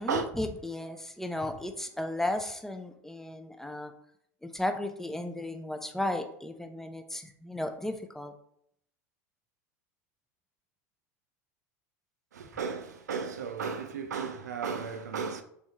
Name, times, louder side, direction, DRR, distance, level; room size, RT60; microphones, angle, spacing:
voice 1, 0.0-3.9 4.4-8.3, left 1 dB, 5° left, 0.4 m, -34 dB
voice 2, 12.3-15.4, right 5 dB, 90° right, 0.4 m, -34 dB
3.4 x 2.9 x 2.7 m
hypercardioid pair, 90°, 9 cm